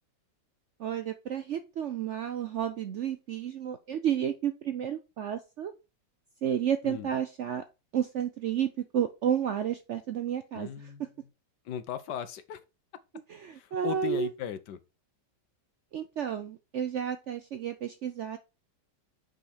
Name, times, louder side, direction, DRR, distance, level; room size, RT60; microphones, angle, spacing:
voice 1, 0.8-5.7 6.4-7.6 7.9-10.7 13.3-14.3 15.9-18.4, right 9 dB, 65° right, 0.7 m, -31 dB
voice 2, 10.5-11.1 11.6-12.6 13.5-14.8, left 10 dB, 80° left, 1.4 m, -37 dB
6.3 x 5.2 x 4.4 m
omnidirectional pair, 1.8 m